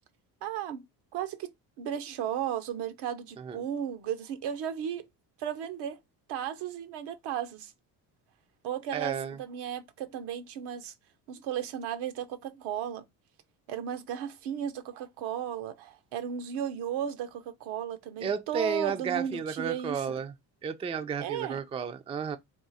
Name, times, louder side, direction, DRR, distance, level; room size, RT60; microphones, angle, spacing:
voice 1, 0.4-0.9 1.1-1.5 1.8-5.1 5.4-6.0 6.3-7.7 8.6-10.9 11.3-13.1 13.7-20.2 21.2-21.6, right 9 dB, 80° right, 0.8 m, -35 dB
voice 2, 8.9-9.4 18.2-20.3 20.6-22.4, right 6 dB, 15° right, 0.3 m, -32 dB
3.6 x 2.4 x 4.0 m
cardioid pair, 110°, 40 cm